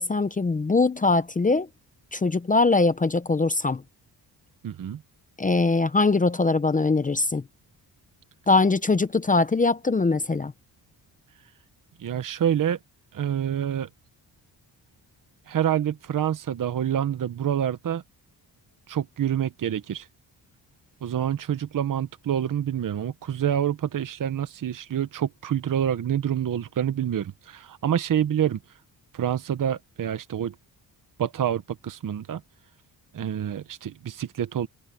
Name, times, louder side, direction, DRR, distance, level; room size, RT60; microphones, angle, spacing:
voice 1, 0.0-1.7 2.1-3.8 5.4-7.4 8.5-10.5, left 3 dB, 20° left, 0.7 m, -22 dB
voice 2, 4.6-5.0 12.0-12.8 13.1-13.9 15.5-18.0 18.9-20.1 21.0-28.6 29.1-30.5 31.2-32.4 33.1-34.7, right 9 dB, 50° right, 1.0 m, -27 dB
wide cardioid pair, 145°, 40 cm